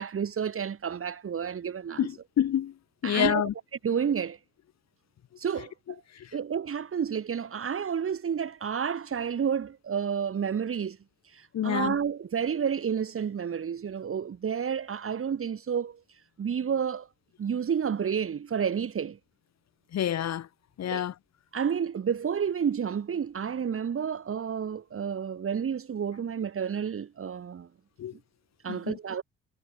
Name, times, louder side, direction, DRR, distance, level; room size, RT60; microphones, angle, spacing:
voice 1, 0.0-2.1 3.0-3.5 3.8-4.4 5.4-6.0 6.3-11.0 11.2-16.0 16.4-17.1 17.4-19.2 20.9-21.0 21.5-27.7 28.6-29.2, right 7 dB, 40° right, 3.3 m, -30 dB
voice 2, 2.0-2.7 3.0-3.5 6.2-6.3 11.5-12.0 19.9-20.5 20.8-21.1 28.0-28.1 28.7-29.0, left 10 dB, 50° left, 3.6 m, -28 dB
figure-of-eight pair, 40°, 34 cm